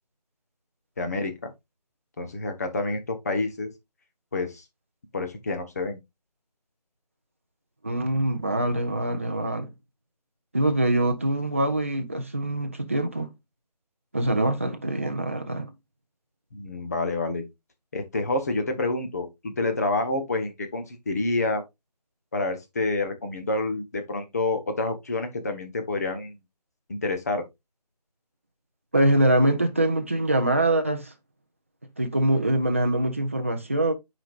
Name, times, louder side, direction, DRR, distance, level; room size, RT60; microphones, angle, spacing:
voice 1, 1.0-1.5 2.2-3.7 4.3-4.6 5.1-6.0 16.5-17.4 17.9-21.6 22.3-26.4 26.9-27.4, left 2 dB, 25° left, 0.9 m, -28 dB
voice 2, 7.8-9.7 10.5-13.3 14.1-15.7 28.9-31.1 32.0-33.9, right 1 dB, 20° right, 0.5 m, -24 dB
8.9 x 5.1 x 2.4 m
figure-of-eight pair, 165°, 21 cm